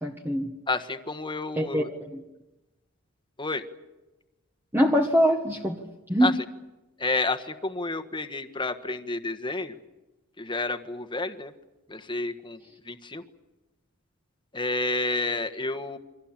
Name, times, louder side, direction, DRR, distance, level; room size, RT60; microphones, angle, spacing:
voice 1, 0.0-0.5 1.6-2.2 4.7-5.8 6.1-6.4, equal, 10° right, 2 dB, 1.3 m, -24 dB
voice 2, 0.7-1.9 3.4-3.6 6.2-6.3 7.0-9.8 10.4-11.5 11.9-12.6 12.8-13.2 14.5-16.0, left 3 dB, 25° left, 7 dB, 1.4 m, -30 dB
28.0 x 24.5 x 7.5 m, 1.1 s
head